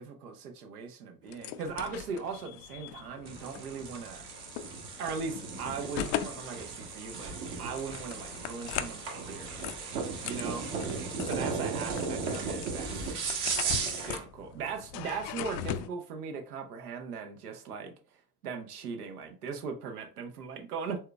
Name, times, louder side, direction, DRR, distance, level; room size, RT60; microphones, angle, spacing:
voice 1, 0.0-4.2 5.0-9.5 10.2-10.7 11.2-13.2 13.6-13.8 14.1-17.9 18.4-21.0, right 5 dB, 80° right, 0.8 m, -39 dB
sound 1, 1.3-15.9, left 10 dB, 50° left, 0.5 m, -41 dB
sound 2, 3.2-14.2, right 5 dB, 60° right, 1.3 m, -36 dB
4.5 x 3.4 x 2.3 m
figure-of-eight pair, 65°, 45 cm